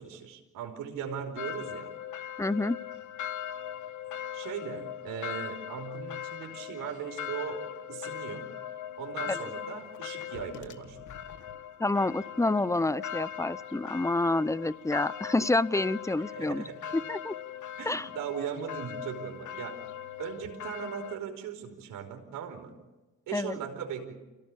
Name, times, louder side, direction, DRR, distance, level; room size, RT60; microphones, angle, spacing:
voice 1, 0.0-1.9 4.3-8.5 9.0-11.0 16.2-16.9 17.8-19.8 20.2-22.7 23.3-24.1, right 8 dB, 75° right, 4 dB, 4.8 m, -38 dB
sound 1, 1.4-21.2, left 10 dB, 65° left, 1.6 m, -40 dB
voice 2, 2.4-2.8 9.3-9.5 11.8-16.6 16.9-17.3 17.9-18.1 23.3-23.6, left 2 dB, 10° left, 18 dB, 0.7 m, -28 dB
26.5 x 17.5 x 8.7 m, 1.1 s
supercardioid pair, 80°, 33 cm